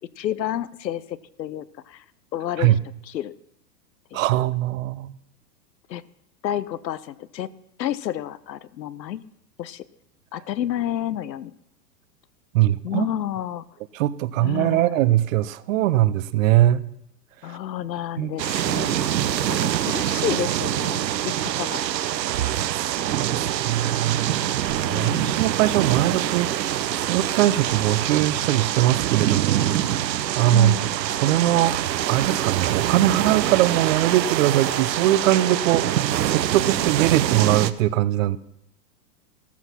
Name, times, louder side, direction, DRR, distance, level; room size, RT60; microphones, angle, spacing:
voice 1, 0.2-2.0 2.3-2.7 3.1-3.3 4.1-4.4 5.9-6.1 6.4-7.5 7.8-9.2 9.6-9.8 10.3-11.5 12.8-13.6 14.4-15.0 17.4-21.8 24.8-25.5 30.5-31.0, left 11 dB, 85° left, 17 dB, 1.0 m, -30 dB
voice 2, 4.1-5.1 12.5-13.1 13.9-16.8 17.5-17.6 18.2-18.3 23.0-30.8 31.1-31.7 32.1-38.4, right 14 dB, 50° right, 16 dB, 0.9 m, -21 dB
sound 1, 18.4-37.7, right 11 dB, 85° right, 1.0 m, -25 dB
14.5 x 13.5 x 5.8 m, 0.78 s
hypercardioid pair, 130°, 49 cm